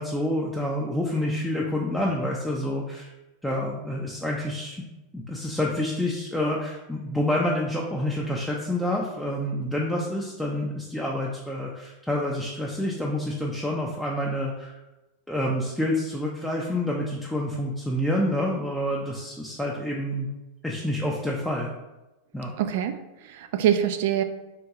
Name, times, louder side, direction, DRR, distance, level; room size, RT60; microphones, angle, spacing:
voice 1, 0.0-3.1 3.4-4.8 5.1-14.7 15.3-20.3 20.6-21.7 22.3-22.5, left 1 dB, 5° left, -3 dB, 0.4 m, -28 dB
voice 2, 22.6-24.2, right 10 dB, 70° right, 9 dB, 0.3 m, -25 dB
3.5 x 2.2 x 2.8 m, 1.0 s
hypercardioid pair, 110°, 0 cm